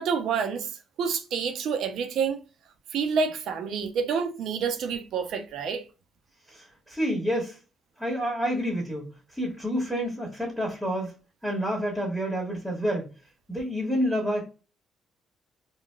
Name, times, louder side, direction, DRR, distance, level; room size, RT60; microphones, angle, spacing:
voice 1, 0.0-2.4 2.9-5.8, right 6 dB, 75° right, 0.6 m, -28 dB
voice 2, 6.5-7.6 8.0-11.1 11.4-13.1 13.5-14.4, equal, ahead, 1.5 m, -29 dB
3.9 x 2.3 x 2.2 m
supercardioid pair, 65°, 0 cm